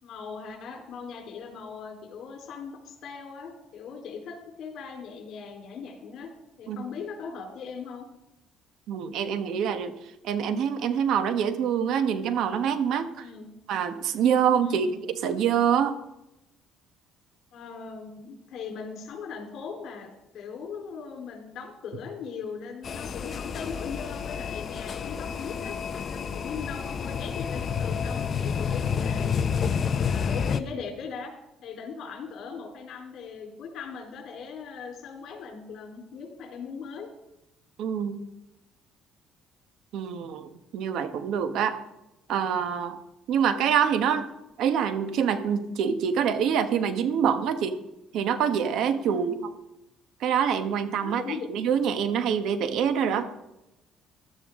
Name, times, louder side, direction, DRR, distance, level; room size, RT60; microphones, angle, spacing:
voice 1, 0.0-6.3 6.6-8.1 13.2-13.5 14.6-14.9 17.5-20.1 20.3-25.8 26.1-29.5 30.1-31.3 31.6-37.1 49.1-49.4 51.0-51.5, left 5 dB, 65° left, 2 dB, 3.9 m, -39 dB
voice 2, 8.9-10.0 10.2-13.2 13.7-16.0 37.8-38.2 39.9-41.8 42.3-43.0 43.3-44.3 44.6-47.7 48.1-49.4 50.2-51.2 51.5-53.3, right 8 dB, 70° right, 10 dB, 1.2 m, -25 dB
sound 1, 22.8-30.6, left 6 dB, 40° left, 0.7 m, -29 dB
15.5 x 12.5 x 3.8 m, 0.92 s
cardioid pair, 120°, 0 cm